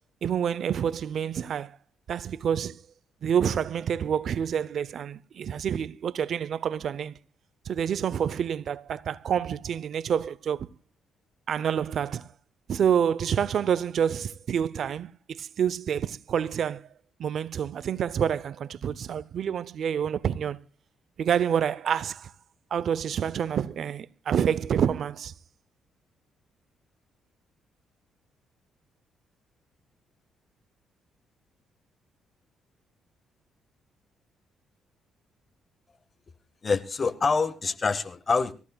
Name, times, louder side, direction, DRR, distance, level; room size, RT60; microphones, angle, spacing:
voice 1, 0.2-1.7 2.1-2.8 3.2-7.2 7.7-10.7 11.5-12.3 12.7-16.9 17.2-20.6 21.2-22.3 22.7-25.3, right 8 dB, 60° right, 0.6 m, -28 dB
voice 2, 36.6-38.5, left 4 dB, 35° left, 1.0 m, -26 dB
25.0 x 15.0 x 2.3 m
cardioid pair, 90°, 0 cm